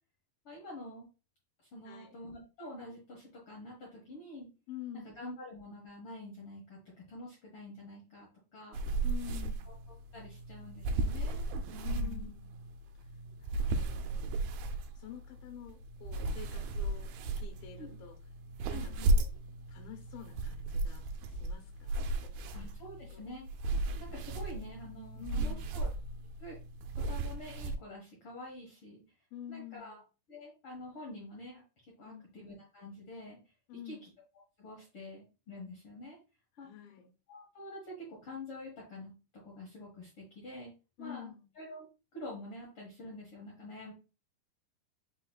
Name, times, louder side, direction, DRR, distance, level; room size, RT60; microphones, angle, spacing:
voice 1, 0.4-1.1 1.7-4.5 5.0-8.8 9.7-9.8 10.1-12.3 17.8-18.0 18.7-19.1 22.5-23.5 24.0-25.9 26.4-26.6 26.8-29.0 29.5-30.0 30.3-31.6 32.0-33.4 33.8-34.1 34.6-36.2 36.6-36.7 37.3-39.1 39.4-40.7 41.0-41.8 42.1-43.9, left 1 dB, 60° left, -3 dB, 1.4 m, -47 dB
voice 2, 1.9-2.2 4.7-5.1 9.0-9.7 11.8-12.6 13.0-13.1 13.4-14.5 15.0-17.1 17.4-18.2 18.7-19.3 19.7-22.0 22.4-22.7 23.1-23.2 25.2-25.9 29.3-30.0 32.1-32.3 33.7-34.1 36.6-37.1 41.0-41.5, left 10 dB, 80° left, 2 dB, 2.4 m, -48 dB
sound 1, 8.7-27.8, right 2 dB, 85° right, 1.9 m, -35 dB
5.6 x 3.8 x 2.3 m, 0.32 s
omnidirectional pair, 4.4 m